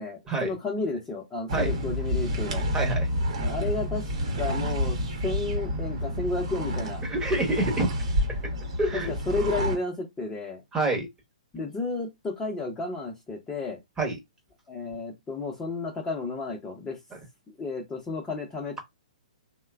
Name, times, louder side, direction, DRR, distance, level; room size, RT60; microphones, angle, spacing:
voice 1, 0.0-2.6 3.5-5.0 5.2-7.0 8.9-10.6 11.5-13.8 14.7-17.0 17.6-18.8, left 3 dB, 15° left, 0.6 m, -32 dB
sound 1, 1.5-9.8, equal, 55° right, 0.9 m, -29 dB
voice 2, 2.7-3.1 7.0-7.9 8.3-8.4 8.8-9.1 10.7-11.1 14.0-14.2, right 2 dB, 15° right, 0.9 m, -26 dB
3.0 x 2.1 x 2.3 m
figure-of-eight pair, 125°, 4 cm